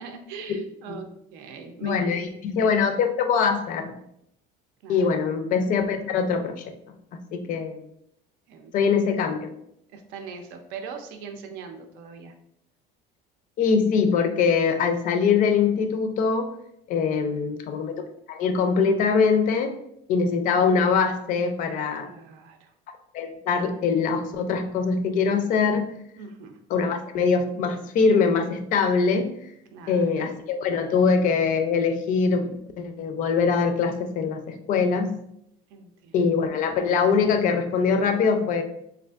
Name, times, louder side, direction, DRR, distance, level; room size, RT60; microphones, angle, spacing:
voice 1, 0.0-2.2 4.8-5.1 7.3-7.6 8.5-9.0 9.9-12.3 22.0-22.7 26.2-26.6 29.7-30.3 35.7-36.3, right 6 dB, 85° right, 6 dB, 0.5 m, -41 dB
voice 2, 1.8-4.0 4.9-7.0 7.3-7.9 8.7-9.5 13.6-16.5 16.9-17.9 18.3-19.7 20.1-22.1 23.1-25.9 26.7-29.3 29.9-35.1 36.1-38.6, left 5 dB, 45° left, 7 dB, 0.4 m, -23 dB
3.4 x 2.5 x 2.3 m, 0.75 s
cardioid pair, 150°, 19 cm